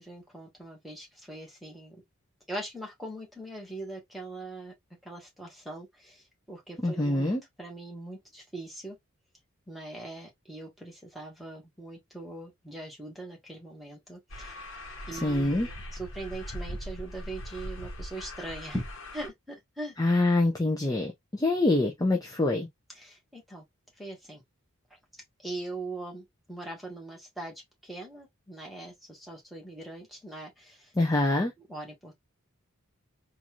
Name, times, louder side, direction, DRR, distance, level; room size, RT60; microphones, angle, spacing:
voice 1, 0.0-2.0 2.5-4.7 5.0-9.0 9.7-14.6 15.1-19.9 22.9-23.6 24.0-24.4 25.4-27.5 27.8-30.9 31.7-32.2, right 1 dB, ahead, 1.4 m, -41 dB
voice 2, 6.8-7.4 15.1-15.7 20.0-22.7 31.0-31.5, left 2 dB, 15° left, 0.5 m, -25 dB
sound 1, 14.3-19.3, equal, 60° left, 1.1 m, -40 dB
4.0 x 2.5 x 2.8 m
head